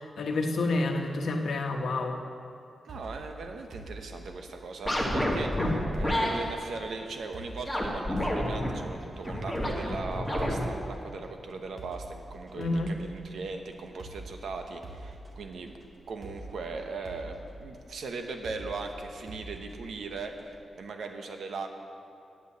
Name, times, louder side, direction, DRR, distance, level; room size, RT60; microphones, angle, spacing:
voice 1, 0.0-2.2 5.6-5.9 12.5-12.9, left 2 dB, 65° left, 3 dB, 1.0 m, -29 dB
voice 2, 2.8-15.8 16.1-21.7, right 4 dB, 75° right, 5 dB, 1.0 m, -39 dB
sound 1, 2.9-20.6, right 2 dB, 30° right, 1.2 m, -47 dB
sound 2, 4.8-6.3 7.6-8.7 9.2-10.6, left 1 dB, ahead, 1.8 m, -29 dB
8.7 x 8.3 x 7.9 m, 2.4 s
wide cardioid pair, 160°, 0 cm